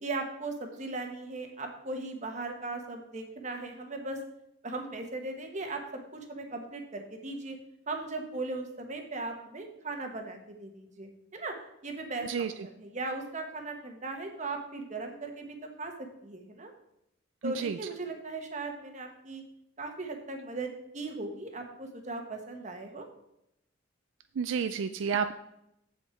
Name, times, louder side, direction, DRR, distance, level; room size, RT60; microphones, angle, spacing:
voice 1, 0.0-4.2 4.6-5.8 6.1-7.6 7.9-11.5 11.8-16.7 17.4-19.4 19.8-23.1, right 3 dB, 35° right, 4 dB, 1.2 m, -38 dB
voice 2, 17.4-17.8 24.4-25.3, right 6 dB, 75° right, 10 dB, 0.4 m, -30 dB
7.6 x 7.5 x 4.5 m, 0.81 s
head